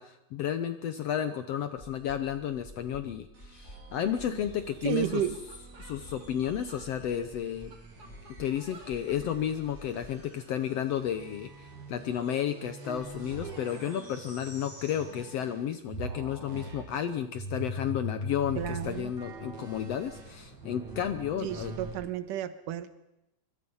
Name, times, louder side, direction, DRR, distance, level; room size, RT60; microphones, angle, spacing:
voice 1, 0.0-5.2 5.8-7.7 8.4-21.7, left 9 dB, 70° left, 10 dB, 1.6 m, -32 dB
sound 1, 1.8-10.2, left 1 dB, 20° left, 3.6 m, -52 dB
sound 2, 3.3-15.6 15.9-21.9, equal, 60° right, 5.9 m, -43 dB
sound 3, 4.4-4.5 4.7-4.8 5.0-6.9 7.5-9.4, right 3 dB, 30° right, 2.9 m, -53 dB
voice 2, 4.8-5.4 18.6-19.1 21.4-22.9, right 11 dB, 80° right, 12 dB, 2.6 m, -32 dB
24.5 x 23.5 x 5.6 m, 0.90 s
omnidirectional pair, 3.8 m